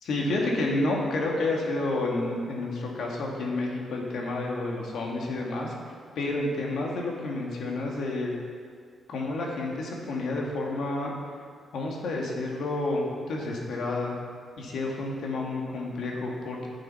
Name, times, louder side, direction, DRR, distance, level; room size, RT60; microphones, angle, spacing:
voice 1, 0.0-5.7 6.2-8.3 9.1-11.1 11.7-14.2 14.6-16.7, left 2 dB, 75° left, -1 dB, 2.1 m, -30 dB
10.0 x 8.1 x 5.7 m, 2.1 s
cardioid pair, 130°, 0 cm